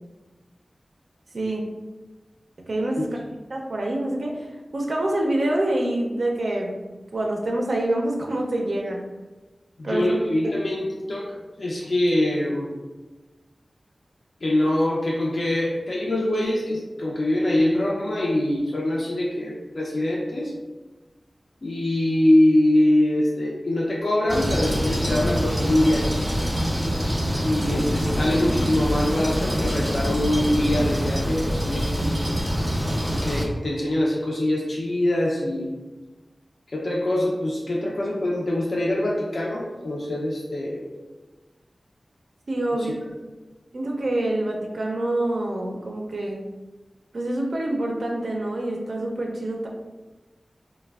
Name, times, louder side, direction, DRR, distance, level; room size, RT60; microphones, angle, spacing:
voice 1, 1.3-1.7 2.7-3.1 3.5-6.8 7.1-9.0 9.8-10.1 42.5-42.9 43.7-46.4 47.1-49.7, right 1 dB, 75° right, 0 dB, 0.4 m, -26 dB
voice 2, 9.8-12.7 14.4-20.5 21.6-26.1 27.4-32.3 33.1-35.7 36.7-40.9 42.8-42.9, left 1 dB, 65° left, -3 dB, 0.4 m, -23 dB
sound 1, 24.3-33.5, equal, 5° right, 0.5 m, -25 dB
3.1 x 2.0 x 2.3 m, 1.2 s
wide cardioid pair, 60°, 0 cm